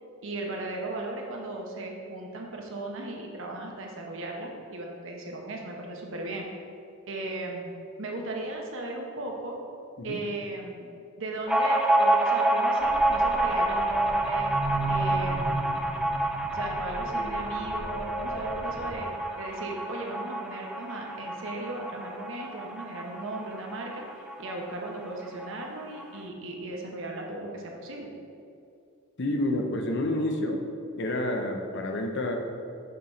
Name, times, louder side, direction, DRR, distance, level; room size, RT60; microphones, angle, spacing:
voice 1, 0.2-6.5 7.1-9.6 10.0-10.9 11.2-14.5 14.9-15.8 16.5-19.1 19.4-24.0 24.4-28.1, right 2 dB, 65° right, 0 dB, 0.9 m, -36 dB
sound 1, 11.5-24.6 24.9-25.0 25.3-26.0, right 1 dB, 5° right, 0.4 m, -28 dB
sound 2, 12.8-18.9, right 2 dB, 15° left, 1.2 m, -35 dB
voice 2, 29.2-30.6 30.9-32.4, left 1 dB, 55° left, 3 dB, 0.7 m, -29 dB
6.7 x 4.1 x 4.3 m, 2.5 s
head